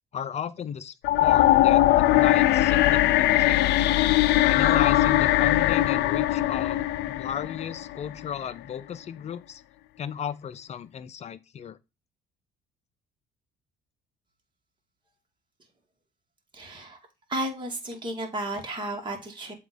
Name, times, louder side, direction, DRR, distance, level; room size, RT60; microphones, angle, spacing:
voice 1, 0.1-3.9 4.4-9.6 10.0-11.8, left 8 dB, 40° left, 0.7 m, -35 dB
sound 1, 1.0-8.1, left 15 dB, 80° left, 0.5 m, -21 dB
voice 2, 16.5-17.0 17.3-19.5, right 1 dB, 30° right, 2.3 m, -33 dB
7.8 x 3.2 x 5.1 m
cardioid pair, 110°, 17 cm